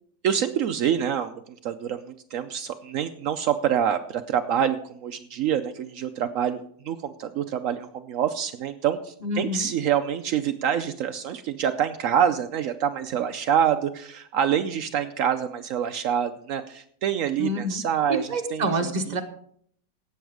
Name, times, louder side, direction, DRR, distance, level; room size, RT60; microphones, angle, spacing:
voice 1, 0.2-18.9, right 9 dB, 80° right, 8 dB, 0.7 m, -26 dB
voice 2, 9.2-9.7 17.4-17.8 18.3-19.2, right 1 dB, 25° right, 4 dB, 1.1 m, -27 dB
17.0 x 7.2 x 4.8 m, 0.63 s
omnidirectional pair, 2.1 m